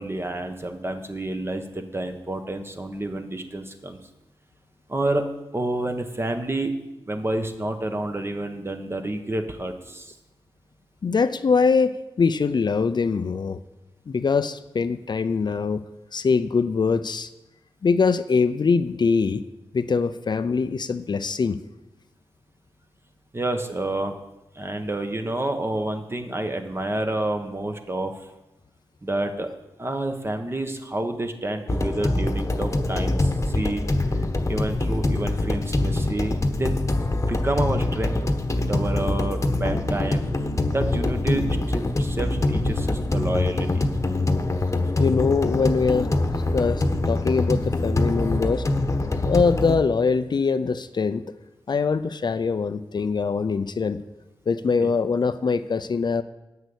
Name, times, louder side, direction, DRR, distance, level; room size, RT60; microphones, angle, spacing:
voice 1, 0.0-4.0 4.9-5.2 5.5-6.7 7.1-10.1 23.3-24.2 24.5-28.1 29.0-29.5 29.8-33.8 34.2-36.7 37.3-38.3 38.6-40.2 40.7-43.8 54.8-54.9, right 1 dB, 25° right, 6 dB, 1.4 m, -29 dB
voice 2, 11.0-13.6 14.1-15.8 16.1-17.3 17.8-19.4 19.7-21.6 45.0-46.1 46.5-48.6 49.3-51.2 51.7-54.0 54.5-56.2, left 5 dB, 55° left, 11 dB, 0.5 m, -23 dB
sound 1, 31.7-49.8, left 2 dB, 35° left, 1.1 m, -24 dB
9.4 x 6.3 x 8.1 m, 0.99 s
cardioid pair, 55°, 9 cm